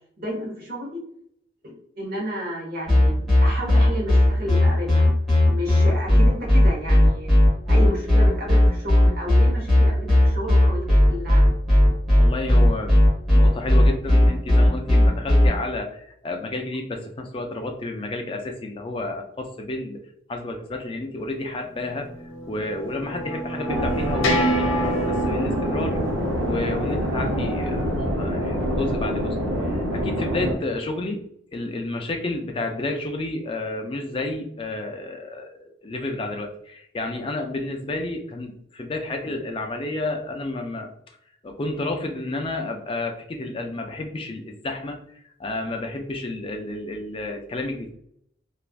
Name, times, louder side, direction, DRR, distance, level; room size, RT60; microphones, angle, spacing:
voice 1, 0.2-1.0 1.6-5.0 5.4-7.3 7.7-11.4, equal, 50° right, -2 dB, 1.1 m, -32 dB
sound 1, 2.9-15.5, left 1 dB, ahead, 1.4 m, -15 dB
voice 2, 12.2-13.0 13.3-20.0 20.3-22.1 22.5-26.0 26.4-31.2 31.5-40.9 41.4-45.0 45.4-47.9, left 2 dB, 25° left, 3 dB, 0.3 m, -31 dB
sound 2, 22.0-27.9, right 1 dB, 80° left, 0.6 m, -29 dB
sound 3, 23.7-30.5, equal, 85° right, 0.7 m, -26 dB
3.2 x 2.4 x 2.4 m, 0.71 s
head